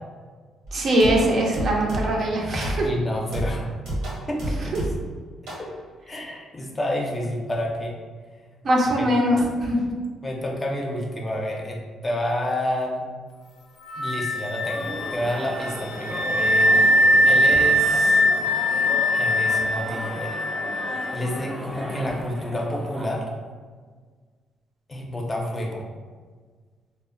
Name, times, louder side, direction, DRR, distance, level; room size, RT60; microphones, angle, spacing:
voice 1, 0.7-2.9 4.7-4.8 8.6-9.8, equal, 55° right, -2 dB, 0.6 m, -21 dB
sound 1, 0.7-2.3 2.6-3.0 3.3-5.1 5.5-5.7, right 1 dB, 80° right, 1.0 m, -30 dB
voice 2, 2.8-3.7 4.3-4.9 5.4-5.8 6.1-8.0 9.0-9.1 10.2-13.0 13.9-17.0 17.2-18.2 19.1-20.4 21.1-23.3 24.9-25.9, left 1 dB, 25° left, -1 dB, 0.5 m, -29 dB
Wind instrument woodwind instrument, 13.9-21.3, equal, 80° left, 0.3 m, -21 dB
sound 2, 14.6-23.1, equal, 20° right, 0.7 m, -35 dB
2.1 x 2.0 x 3.7 m, 1.5 s
cardioid pair, 90°, 0 cm